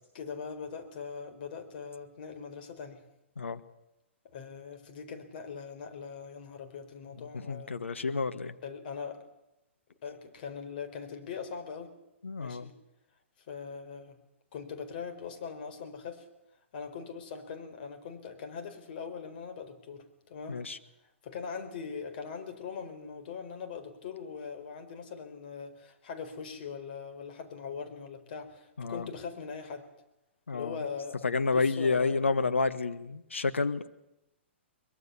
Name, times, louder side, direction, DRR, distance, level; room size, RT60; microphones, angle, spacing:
voice 1, 0.1-3.0 4.3-7.8 8.6-9.3 10.0-11.9 12.4-12.7 13.5-14.2 14.5-16.3 16.7-20.6 21.2-29.8 30.5-32.2, left 6 dB, 50° left, 7 dB, 4.3 m, -41 dB
voice 2, 7.2-8.5 12.2-12.7 20.5-20.8 28.8-29.1 30.5-30.8 31.2-33.9, left 4 dB, 75° left, 10 dB, 1.5 m, -30 dB
23.0 x 22.0 x 7.0 m, 0.88 s
figure-of-eight pair, 115°, 7 cm